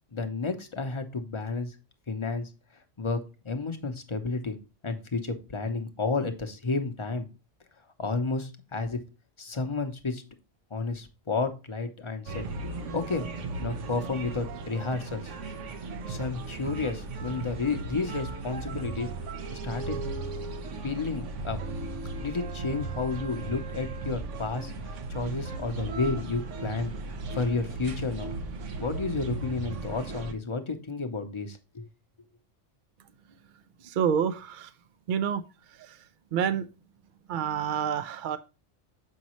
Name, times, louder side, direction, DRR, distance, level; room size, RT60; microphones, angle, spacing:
voice 1, 0.1-1.7 2.1-2.5 3.0-4.6 4.8-7.3 8.0-9.0 9.4-10.2 10.7-12.5 12.9-13.3 13.6-15.3 16.1-19.1 19.6-20.0 20.8-21.6 22.2-26.9 27.3-28.3 28.8-31.8, left 3 dB, 30° left, 6 dB, 0.7 m, -31 dB
sound 1, 12.3-30.3, right 3 dB, 80° right, 1.1 m, -36 dB
voice 2, 33.8-34.7 35.1-35.4 35.8-36.0 36.3-36.7 37.3-38.4, right 8 dB, 60° right, 11 dB, 0.5 m, -28 dB
7.2 x 5.2 x 3.0 m, 0.30 s
omnidirectional pair, 1.2 m